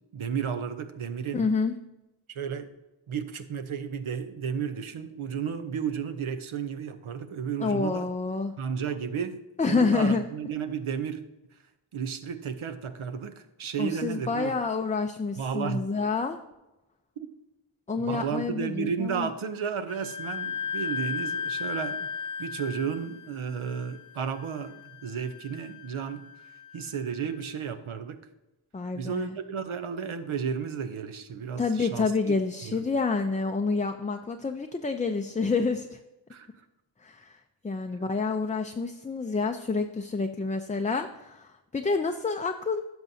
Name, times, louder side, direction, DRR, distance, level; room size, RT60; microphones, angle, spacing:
voice 1, 0.1-1.4 2.3-2.7 3.1-8.1 8.6-9.4 9.6-11.2 11.9-14.5 15.4-15.8 17.2-17.3 18.1-22.1 22.4-26.3 26.7-28.2 28.9-32.3 32.6-32.8 36.3-36.5, right 7 dB, 75° right, 9 dB, 0.8 m, -33 dB
voice 2, 1.3-1.7 7.6-8.5 9.6-10.3 13.8-16.4 17.9-19.3 28.7-29.4 31.6-36.0 37.0-42.8, left 4 dB, 15° left, 5 dB, 0.4 m, -28 dB
Wind instrument woodwind instrument, 19.9-27.3, left 6 dB, 40° left, 0.9 m, -36 dB
10.5 x 6.2 x 2.7 m, 1.0 s
cardioid pair, 50°, 49 cm